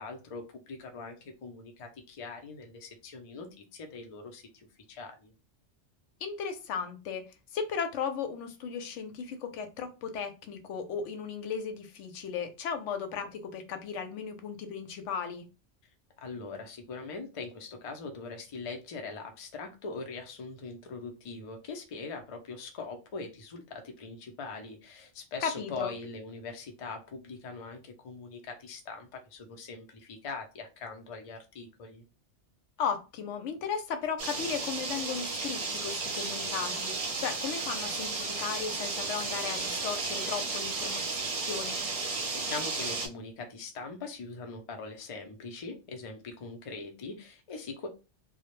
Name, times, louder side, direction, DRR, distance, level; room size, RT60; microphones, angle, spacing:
voice 1, 0.0-5.3 16.2-32.0 42.3-47.9, left 4 dB, 45° left, 3 dB, 0.4 m, -42 dB
voice 2, 6.2-7.2 7.5-15.5 25.4-25.9 32.8-41.0 41.5-41.8, left 6 dB, 85° left, 7 dB, 0.9 m, -36 dB
sound 1, 34.2-43.1, right 3 dB, 45° right, 0.5 m, -33 dB
2.2 x 2.0 x 2.9 m, 0.29 s
omnidirectional pair, 1.2 m